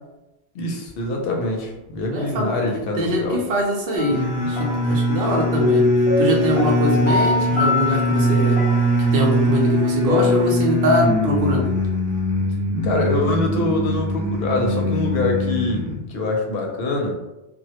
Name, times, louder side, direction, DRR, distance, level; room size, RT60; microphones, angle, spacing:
voice 1, 0.5-3.4 12.8-17.2, left 2 dB, 70° left, 1 dB, 0.7 m, -24 dB
voice 2, 2.0-2.6 3.0-5.9 6.2-8.6 9.1-11.7, equal, 65° right, -1 dB, 0.8 m, -22 dB
sound 1, 4.0-10.4, left 3 dB, 45° left, 0.4 m, -24 dB
sound 2, 4.1-16.0, equal, 25° right, 0.5 m, -22 dB
2.1 x 2.1 x 2.8 m, 0.99 s
omnidirectional pair, 1.0 m